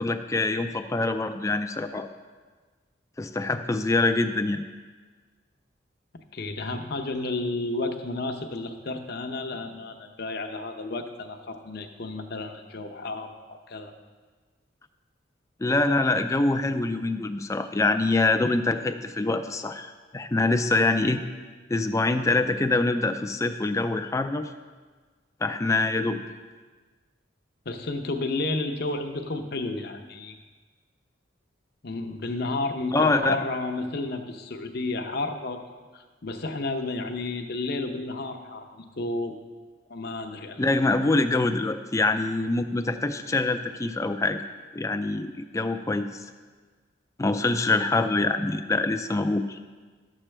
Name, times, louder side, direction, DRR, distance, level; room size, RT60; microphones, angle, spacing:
voice 1, 0.0-2.1 3.2-4.6 15.6-21.2 21.7-24.5 25.4-26.2 32.9-33.4 40.6-44.4 44.7-46.2 47.2-49.6, left 2 dB, 15° left, 8 dB, 0.4 m, -25 dB
voice 2, 6.3-13.9 27.7-30.4 31.8-35.6 35.9-39.3 39.9-40.6, left 2 dB, 55° left, 5 dB, 0.7 m, -32 dB
12.0 x 7.4 x 3.3 m, 1.4 s
head